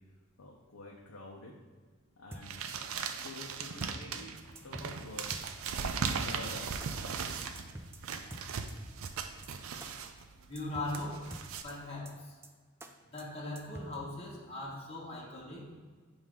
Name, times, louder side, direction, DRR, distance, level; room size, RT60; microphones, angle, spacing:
voice 1, 0.4-1.6 2.2-2.6 3.2-5.3 5.9-7.5, left 2 dB, 80° left, -3 dB, 0.7 m, -48 dB
sound 1, 2.3-2.7 3.0-3.1 3.4-3.5 3.8-3.9 4.2-4.3 4.5-5.0 5.3-5.7 6.0-6.1 6.4-6.5 6.8-6.9 7.2-7.3 7.5-8.0 8.3-8.7 9.0-9.1 9.4-9.5 9.8-9.9 10.2-10.3 10.5-11.0 11.3-11.7 12.0-12.1 12.4-12.5 12.8-12.9 13.2-13.3 13.5-14.0, right 1 dB, 10° right, 0.4 m, -47 dB
sound 2, 2.4-11.6, right 5 dB, 70° right, 0.4 m, -38 dB
voice 2, 10.5-11.3 11.6-12.4 13.1-15.7, left 2 dB, 30° left, -5 dB, 1.2 m, -40 dB
7.3 x 2.7 x 4.9 m, 1.5 s
head